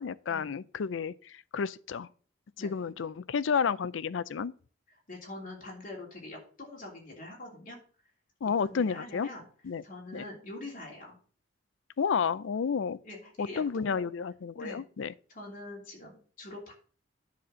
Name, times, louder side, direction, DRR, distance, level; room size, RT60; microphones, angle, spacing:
voice 1, 0.0-2.1 2.6-4.5 8.4-9.3 9.6-9.8 10.1-10.2 12.0-13.0 13.4-15.1, left 6 dB, 80° left, 0.4 m, -31 dB
voice 2, 5.1-7.8 8.7-9.4 9.8-11.2 13.0-14.1 14.5-14.8 15.3-16.7, left 1 dB, 45° left, 3.1 m, -44 dB
10.5 x 4.2 x 6.2 m
head